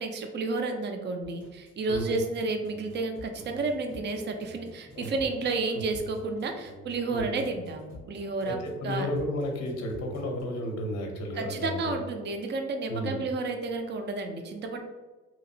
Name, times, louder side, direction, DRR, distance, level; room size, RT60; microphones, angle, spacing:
voice 1, 0.0-8.6 8.8-9.1 11.3-14.8, right 3 dB, 35° right, 5 dB, 0.4 m, -31 dB
sound 1, 1.2-10.4, left 2 dB, 65° right, 1.4 m, -48 dB
voice 2, 8.4-11.9 12.9-13.2, left 1 dB, 60° left, 2 dB, 0.6 m, -32 dB
2.9 x 2.0 x 2.6 m, 1.2 s
cardioid pair, 90°, 30 cm